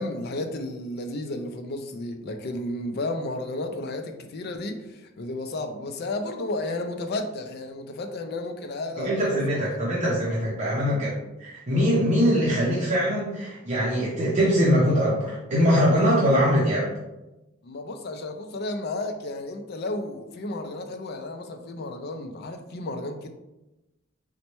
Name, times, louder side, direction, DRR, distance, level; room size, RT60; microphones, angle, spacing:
voice 1, 0.0-9.9 10.8-11.1 17.6-23.3, left 2 dB, 55° left, 6 dB, 0.4 m, -33 dB
voice 2, 9.0-11.1 11.4-16.9, equal, 35° right, -6 dB, 0.6 m, -22 dB
4.0 x 2.1 x 3.0 m, 0.99 s
head